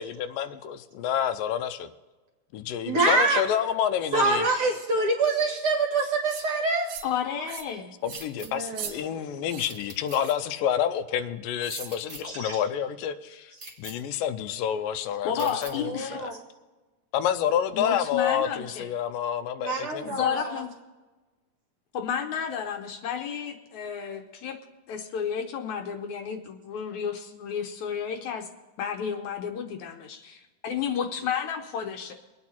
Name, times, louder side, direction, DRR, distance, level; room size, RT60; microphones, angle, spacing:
voice 1, 0.0-1.9 2.5-4.5 8.0-13.5 13.8-15.9 16.1-16.3 17.1-20.3, left 9 dB, 90° left, 10 dB, 2.4 m, -28 dB
voice 2, 2.9-3.4 4.1-6.9 8.4-9.2 12.2-12.6 15.8-16.4 19.6-20.6, right 3 dB, 50° right, 2 dB, 2.1 m, -26 dB
sound 1, 6.3-6.5 6.9-7.2 7.5-7.7 8.0-8.3 8.7-8.9 9.5-9.7 10.2-10.5 11.6-12.0, right 7 dB, 65° right, 2.4 m, -39 dB
voice 3, 7.0-7.9 15.2-16.2 17.7-18.9 20.0-20.7 21.9-24.6 24.9-28.5 28.8-32.1, left 7 dB, 70° left, 5 dB, 2.1 m, -32 dB
sound 2, 8.1-8.5 9.7-10.2 11.7-12.2 13.6-13.9 15.4-15.7, right 2 dB, 20° right, 1.5 m, -42 dB
23.5 x 8.8 x 4.3 m, 1.2 s
omnidirectional pair, 3.8 m